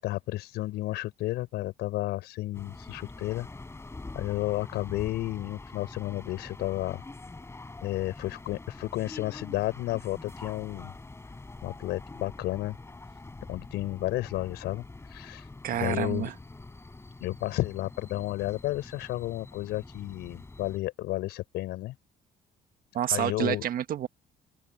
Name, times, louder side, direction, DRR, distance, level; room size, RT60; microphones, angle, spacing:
voice 1, 0.0-3.5 4.1-7.0 7.8-10.9 11.6-12.8 13.5-16.3 17.2-22.0 23.1-23.6, left 16 dB, 85° left, 6.6 m, -32 dB
sound 1, 2.5-20.8, left 2 dB, 15° left, 5.6 m, -45 dB
voice 2, 15.6-16.3 22.9-24.1, right 11 dB, 60° right, 1.5 m, -28 dB
open air
cardioid pair, 110°, 17 cm